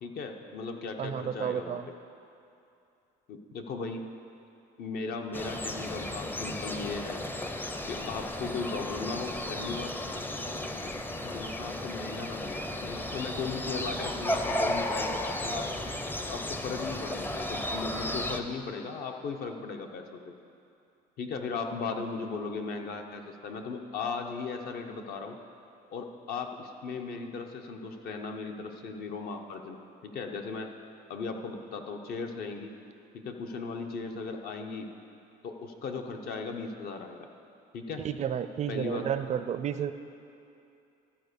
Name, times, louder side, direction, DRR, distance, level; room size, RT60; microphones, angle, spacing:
voice 1, 0.0-1.8 3.3-4.0 4.8-7.2 7.9-9.9 11.2-15.7 16.3-20.3 21.2-25.4 25.9-29.8 30.0-30.7 31.1-32.7 33.1-34.9 35.4-37.3 37.7-38.0 38.7-39.0, left 4 dB, 65° left, 4 dB, 0.9 m, -37 dB
voice 2, 1.0-1.9 38.0-39.9, right 8 dB, 45° right, 11 dB, 0.4 m, -31 dB
sound 1, 5.3-18.4, left 1 dB, 10° left, 0.5 m, -34 dB
13.0 x 4.5 x 6.7 m, 2.6 s
cardioid pair, 110°, 17 cm